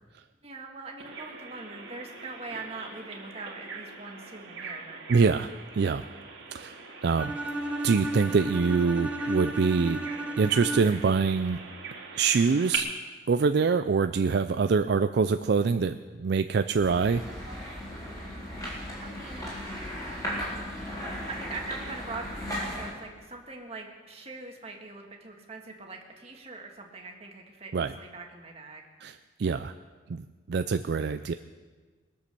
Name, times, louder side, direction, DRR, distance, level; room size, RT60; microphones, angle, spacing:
voice 1, 0.4-5.0 19.0-19.4 21.3-28.8, right 3 dB, 30° right, 1 dB, 1.8 m, -42 dB
Bird vocalization bird call bird song, 1.0-12.8, right 5 dB, 80° right, 2.1 m, -42 dB
voice 2, 5.1-6.0 6.5-6.7 7.0-7.3 7.8-10.0 10.4-11.6 12.2-12.9 13.3-17.2 27.7-27.9 29.0-29.7 30.1-31.3, right 5 dB, 60° right, 9 dB, 0.4 m, -25 dB
Bowed string instrument, 7.2-11.2, right 1 dB, 5° right, 1.1 m, -33 dB
sound 1, 16.8-22.9, equal, 20° left, 4.3 m, -36 dB
21.5 x 7.9 x 6.8 m, 1.4 s
head